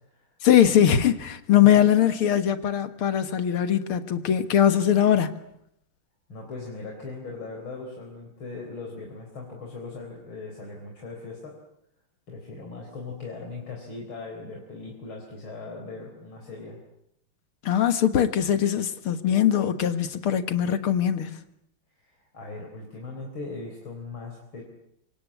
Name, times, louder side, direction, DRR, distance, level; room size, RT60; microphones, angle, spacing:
voice 1, 0.4-5.4 17.6-21.4, left 10 dB, 85° left, 2.4 m, -21 dB
voice 2, 6.3-11.5 12.3-16.8 22.3-24.6, left 3 dB, 70° left, 4.8 m, -39 dB
26.5 x 25.5 x 8.5 m
omnidirectional pair, 2.3 m